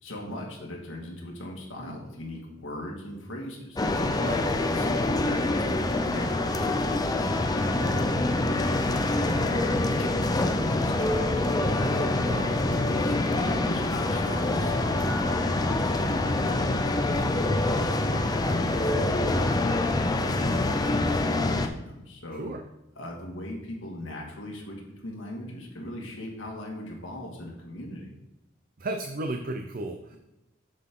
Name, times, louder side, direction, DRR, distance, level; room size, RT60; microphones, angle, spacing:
voice 1, 0.0-3.8 4.3-5.8 6.1-9.0 9.4-11.9 12.3-19.7 20.1-22.5 23.0-28.1, left 1 dB, 70° left, -1 dB, 1.9 m, -39 dB
sound 1, 3.8-21.7, left 2 dB, 20° left, 0.5 m, -25 dB
voice 2, 4.1-4.4 12.3-12.5 22.4-22.6 28.8-30.2, right 2 dB, 45° right, 5 dB, 0.6 m, -34 dB
7.4 x 6.6 x 3.8 m, 0.94 s
head